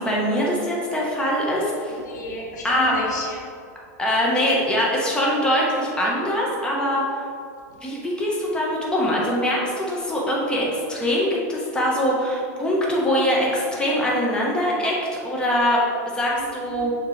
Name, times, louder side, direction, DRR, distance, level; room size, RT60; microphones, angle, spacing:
voice 1, 0.0-2.0 2.6-2.9 4.0-7.2 7.8-14.9 15.2-15.8 16.1-16.9, equal, 10° left, -4 dB, 1.3 m, -23 dB
voice 2, 1.9-3.4 16.3-16.9, equal, 85° left, -2 dB, 1.3 m, -33 dB
6.7 x 4.3 x 3.4 m, 2.4 s
hypercardioid pair, 120°, 9 cm